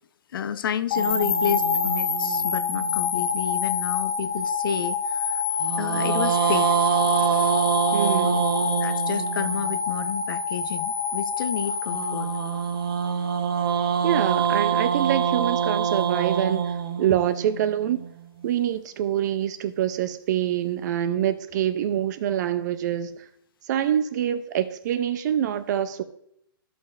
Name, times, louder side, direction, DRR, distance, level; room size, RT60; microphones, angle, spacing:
voice 1, 0.3-5.4 5.8-6.7 8.2-8.4 8.8-12.3, left 8 dB, 75° left, 0.6 m, -30 dB
sound 1, 0.9-13.1, left 6 dB, 60° left, 1.8 m, -27 dB
sound 2, 1.0-3.4 5.6-9.8 11.9-18.1, right 7 dB, 75° right, 0.9 m, -25 dB
voice 2, 7.9-8.4 14.0-16.7 17.0-18.0 18.4-23.2 23.7-26.0, right 10 dB, 50° right, 0.7 m, -25 dB
12.5 x 5.9 x 2.6 m
hypercardioid pair, 150°, 12 cm